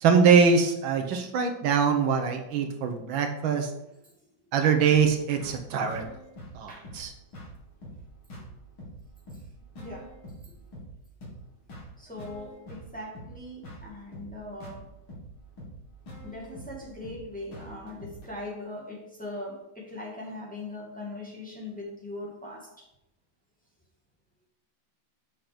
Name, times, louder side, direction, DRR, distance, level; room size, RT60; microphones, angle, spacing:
voice 1, 0.0-3.7 4.5-6.0 6.5-7.1, right 6 dB, 80° right, 5 dB, 1.7 m, -23 dB
sound 1, 5.2-18.3, equal, 75° left, 2.9 m, -45 dB
voice 2, 9.8-10.1 10.4-10.5 12.0-14.8 16.2-22.9, left 1 dB, 5° left, -4 dB, 2.0 m, -40 dB
7.5 x 5.9 x 5.1 m, 0.84 s
omnidirectional pair, 2.2 m